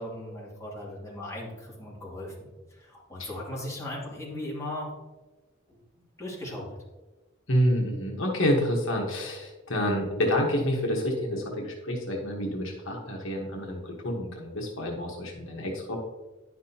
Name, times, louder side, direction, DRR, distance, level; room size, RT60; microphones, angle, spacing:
voice 1, 0.0-2.5 2.8-4.9 5.7-5.8 6.2-6.7, left 1 dB, 15° left, -6 dB, 2.4 m, -37 dB
voice 2, 7.5-16.0, equal, 70° left, -1 dB, 1.4 m, -28 dB
10.5 x 6.0 x 2.9 m, 1.2 s
head